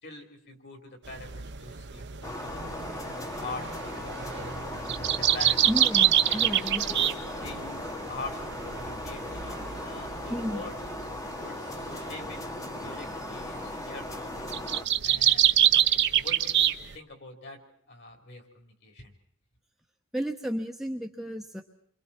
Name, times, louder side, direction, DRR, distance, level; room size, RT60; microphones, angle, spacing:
voice 1, 0.0-2.7 3.1-4.3 5.1-5.7 6.3-7.1 7.4-10.8 11.4-14.5 15.0-17.6 17.9-19.1, left 3 dB, 50° left, 4 dB, 3.9 m, -44 dB
sound 1, 1.0-17.0, right 11 dB, 50° right, 0.8 m, -27 dB
sound 2, 2.2-14.8, left 1 dB, 15° left, 1.3 m, -38 dB
voice 2, 5.7-7.0 10.3-10.7 20.1-21.6, equal, ahead, 2 dB, 1.0 m, -32 dB
29.5 x 25.0 x 4.4 m, 0.65 s
head